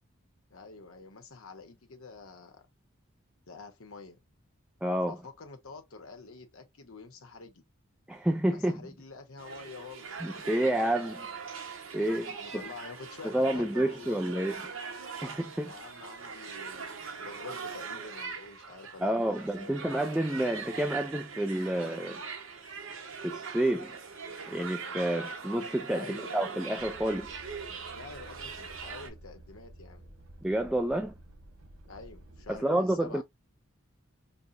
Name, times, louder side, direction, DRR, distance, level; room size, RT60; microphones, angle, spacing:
voice 1, 0.5-2.7 3.5-4.2 5.1-7.6 8.5-10.2 10.7-11.4 12.3-14.2 15.6-19.8 25.9-26.5 27.7-30.1 31.9-33.2, left 4 dB, 80° left, 1.0 m, -47 dB
voice 2, 4.8-5.2 8.1-8.8 10.2-11.3 11.9-12.6 13.2-14.6 15.2-15.7 19.0-22.2 23.2-24.0 24.5-27.3 30.4-31.1 32.5-33.2, right 1 dB, 5° right, 0.3 m, -29 dB
sound 1, 9.4-29.1, right 5 dB, 70° right, 1.0 m, -41 dB
sound 2, 26.8-32.6, right 1 dB, 85° right, 1.3 m, -52 dB
5.3 x 2.2 x 2.6 m
head